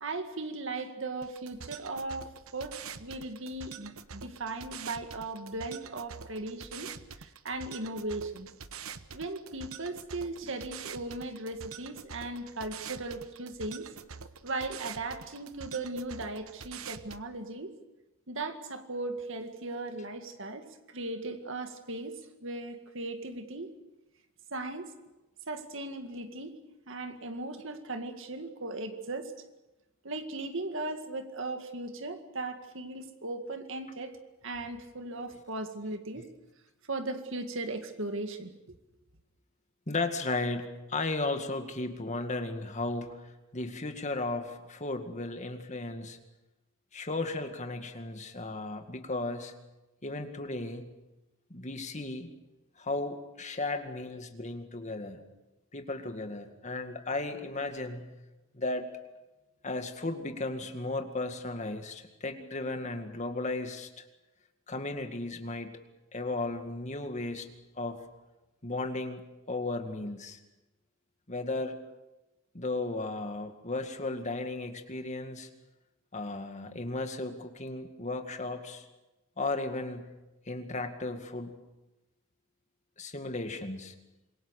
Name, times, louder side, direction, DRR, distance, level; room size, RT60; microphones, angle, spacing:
voice 1, 0.0-6.9 7.2-8.5 9.1-13.9 14.4-17.7 18.3-23.7 24.5-24.9 25.5-26.5 26.9-29.3 30.0-34.2 34.4-36.2 36.9-38.8, right 2 dB, 65° right, 7 dB, 2.1 m, -37 dB
sound 1, 1.2-17.2, right 6 dB, 80° right, 1.1 m, -46 dB
voice 2, 39.9-46.2 46.9-49.5 50.0-50.9 51.5-52.3 52.8-55.2 55.7-58.1 58.5-58.9 59.6-63.9 64.7-65.7 66.1-67.5 67.8-68.0 68.6-69.2 69.5-70.4 71.3-71.7 72.5-75.5 76.1-78.8 79.4-80.0 80.5-81.5 83.0-83.9, left 2 dB, 35° left, 6 dB, 2.0 m, -35 dB
26.5 x 23.0 x 6.6 m, 1.0 s
head